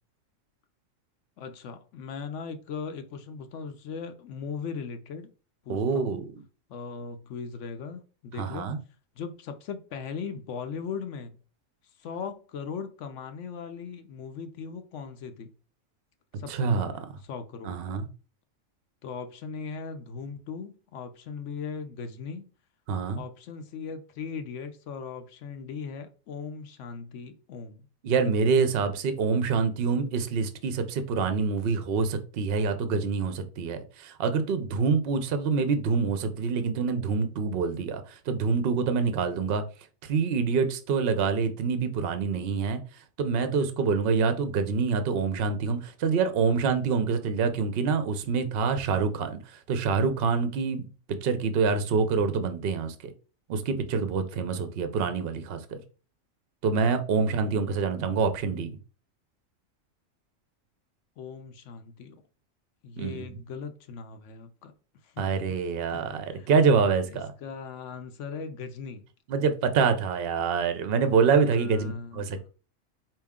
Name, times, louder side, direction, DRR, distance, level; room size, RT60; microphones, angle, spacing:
voice 1, 1.4-5.3 5.6-6.2 6.7-8.7 9.2-11.4 12.0-15.5 16.4-17.8 19.0-22.5 23.2-27.9 57.1-58.3 61.2-62.2 62.8-64.7 65.0-65.6 65.9-66.5 67.1-69.0 71.4-72.5, left 5 dB, 70° left, 0.9 m, -39 dB
voice 2, 5.7-6.3 8.4-8.8 16.5-16.9 17.6-18.1 22.9-23.2 28.0-39.6 40.0-42.8 43.2-49.4 49.7-50.8 51.1-52.9 53.5-55.8 56.6-58.7 63.0-63.2 65.2-67.3 69.3-72.5, right 5 dB, 55° right, 0.7 m, -26 dB
4.5 x 2.9 x 3.6 m
omnidirectional pair, 1.4 m